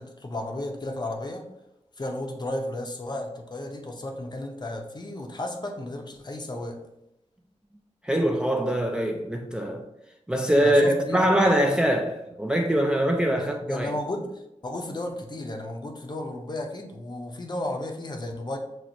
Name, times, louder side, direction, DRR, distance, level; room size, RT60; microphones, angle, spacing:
voice 1, 0.0-1.4 2.0-6.8 10.6-11.2 13.4-18.6, left 1 dB, 35° left, 0.6 m, -34 dB
voice 2, 8.0-9.8 10.3-13.9, right 1 dB, 5° right, 0.3 m, -23 dB
5.8 x 2.0 x 2.5 m
wide cardioid pair, 85°, 12 cm